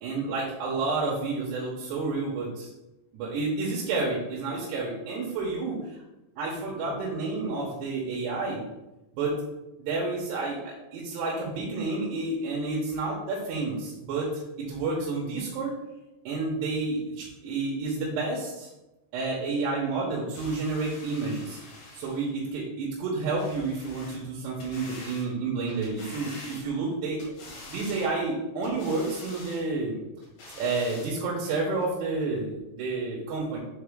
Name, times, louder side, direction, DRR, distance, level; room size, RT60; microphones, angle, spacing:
voice 1, 0.0-2.7 3.1-5.8 6.4-8.6 9.1-9.3 9.8-15.7 16.3-18.7 19.1-21.6 21.9-27.2 27.5-30.0 30.6-33.6, right 3 dB, 85° right, -3 dB, 3.1 m, -30 dB
sound 1, 20.3-22.3 23.4-24.2 24.6-25.3 25.7-26.9 27.2-28.1 28.6-29.6 30.2-31.1 31.8-31.9, left 2 dB, 70° left, 3.3 m, -46 dB
7.1 x 3.8 x 3.6 m, 0.99 s
omnidirectional pair, 4.8 m